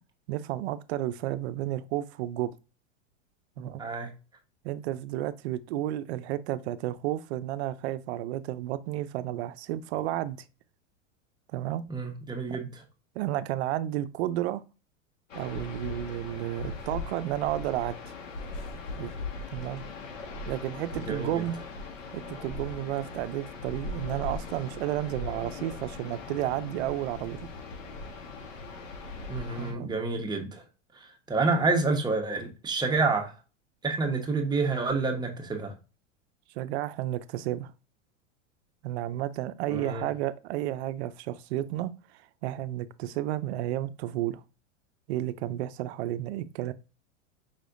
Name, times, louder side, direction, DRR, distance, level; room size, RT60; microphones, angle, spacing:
voice 1, 0.3-2.5 3.6-3.8 4.6-10.4 11.5-11.8 12.5-12.6 13.2-14.6 15.3-18.0 19.0-19.1 19.5-19.8 20.5-21.6 22.1-27.5 29.6-29.9 36.6-37.7 38.8-41.9 42.4-44.4 45.1-46.7, right 13 dB, 60° right, 0.5 m, -32 dB
voice 2, 3.8-4.1 11.9-12.7 21.1-21.4 29.3-30.6 31.3-33.3 33.8-35.7 39.7-40.0, right 3 dB, 10° right, 1.0 m, -28 dB
sound 1, 15.3-29.7, left 3 dB, 80° left, 1.6 m, -39 dB
5.6 x 3.3 x 2.5 m
hypercardioid pair, 125°, 38 cm